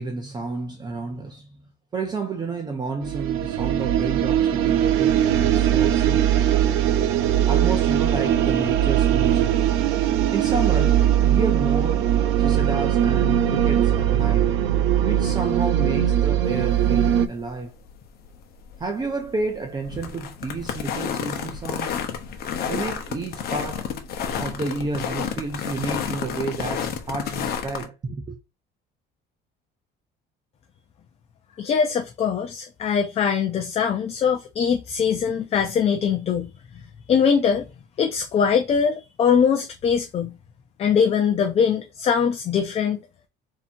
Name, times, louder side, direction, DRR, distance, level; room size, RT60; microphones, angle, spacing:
voice 1, 0.0-1.6 1.9-6.5 7.5-9.6 10.3-14.5 15.0-17.7 18.8-22.0 22.7-23.9 24.4-28.4, right 3 dB, 20° right, 0.6 m, -31 dB
sound 1, 3.0-17.3, right 10 dB, 80° right, 0.6 m, -20 dB
sound 2, 16.4-27.9, left 7 dB, 45° left, 0.9 m, -31 dB
voice 2, 31.6-36.5 37.1-37.7 38.0-40.3 40.8-43.0, left 7 dB, 30° left, 0.5 m, -22 dB
3.5 x 2.8 x 4.3 m
cardioid pair, 160°, 21 cm